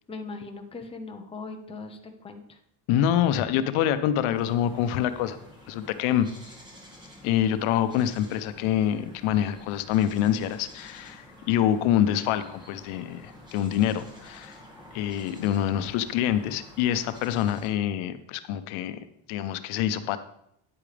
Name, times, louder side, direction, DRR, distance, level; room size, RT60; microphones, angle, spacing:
voice 1, 0.1-2.6, left 3 dB, 10° left, 4 dB, 0.7 m, -39 dB
voice 2, 2.9-5.4 5.7-6.3 7.2-14.6 14.9-19.0 19.3-20.2, left 10 dB, 85° left, 11 dB, 0.8 m, -26 dB
sound 1, 4.3-17.7, left 1 dB, 10° right, 2.0 m, -49 dB
9.7 x 8.6 x 3.4 m, 0.74 s
cardioid pair, 155°, 48 cm